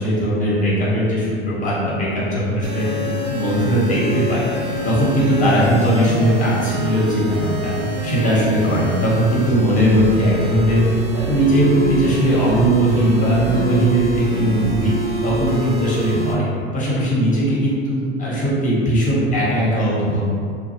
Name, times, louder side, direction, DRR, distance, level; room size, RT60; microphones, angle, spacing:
voice 1, 0.0-2.9 3.3-7.7 8.0-10.8 11.1-14.9 15.2-16.5 16.7-20.4, right 1 dB, 20° left, -7 dB, 1.1 m, -19 dB
sound 1, 2.6-16.3, right 1 dB, 45° right, 0.6 m, -26 dB
3.0 x 2.2 x 2.8 m, 2.2 s
hypercardioid pair, 90°, 35 cm